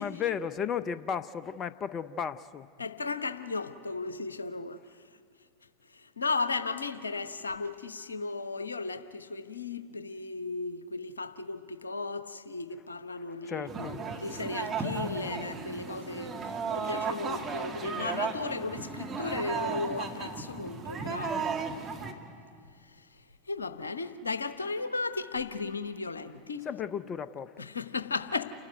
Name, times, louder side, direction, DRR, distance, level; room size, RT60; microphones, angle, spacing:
voice 1, 0.0-2.7 13.2-14.0 16.8-16.9 26.6-27.5, left 7 dB, 35° left, 15 dB, 0.5 m, -34 dB
voice 2, 2.8-4.8 6.2-13.9 14.2-16.3 16.7-21.5 23.5-26.7 27.6-28.4, left 3 dB, 85° left, 12 dB, 0.9 m, -35 dB
sound 1, 13.7-22.1, right 5 dB, 25° right, 2.1 m, -35 dB
29.0 x 12.5 x 9.2 m, 2.1 s
figure-of-eight pair, 85°, 0 cm